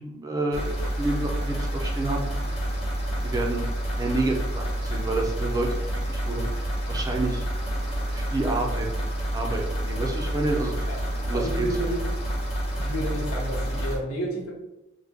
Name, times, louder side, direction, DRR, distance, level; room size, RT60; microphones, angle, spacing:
voice 1, 0.0-2.3 3.2-3.6 4.0-5.7 6.1-7.4 8.1-8.9 9.3-11.7, right 2 dB, 15° right, 0 dB, 0.4 m, -29 dB
sound 1, 0.5-14.0, right 1 dB, 30° left, 0.9 m, -28 dB
voice 2, 11.3-12.0 12.8-14.5, right 1 dB, 90° left, -3 dB, 1.1 m, -30 dB
3.3 x 2.1 x 3.5 m, 0.92 s
head